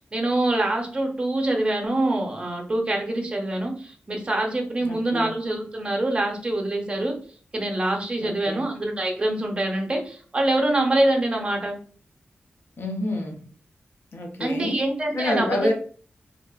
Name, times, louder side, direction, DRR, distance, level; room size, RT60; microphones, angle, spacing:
voice 1, 0.1-7.2 7.5-11.8 14.4-15.7, right 1 dB, 25° right, 1 dB, 0.6 m, -25 dB
voice 2, 4.8-5.3 8.2-8.7 12.8-13.4 14.1-14.8 15.1-15.7, left 1 dB, 65° left, 2 dB, 0.5 m, -28 dB
2.7 x 2.3 x 2.3 m, 0.44 s
wide cardioid pair, 115°, 4 cm